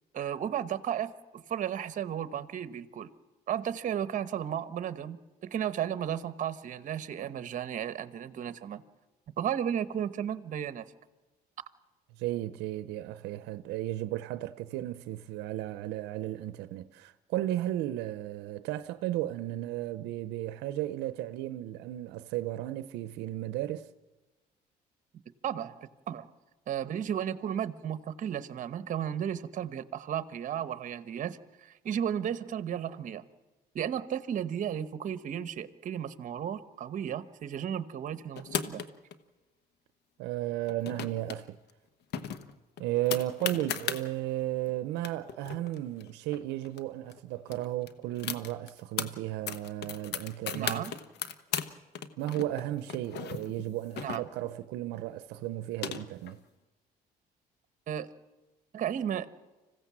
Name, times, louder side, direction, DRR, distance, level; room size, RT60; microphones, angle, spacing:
voice 1, 0.1-3.1 3.5-8.8 9.4-10.9 25.4-25.8 26.1-26.3 26.7-33.2 33.7-38.8 50.5-50.9 54.0-54.3 57.9-58.1 58.7-59.3, right 9 dB, 50° right, 1.0 m, -34 dB
voice 2, 12.2-23.9 40.2-41.6 42.8-50.8 52.2-56.4, right 14 dB, 90° right, 0.6 m, -34 dB
sound 1, 38.4-39.1 40.6-41.4 41.7-41.8 42.1-44.0 44.7-44.8 45.0-46.8 47.1-47.2 47.5-49.1 49.5-51.7 52.0-54.6 55.4-56.3, left 8 dB, 80° left, 1.1 m, -36 dB
26.0 x 15.5 x 7.4 m
cardioid pair, 110°, 17 cm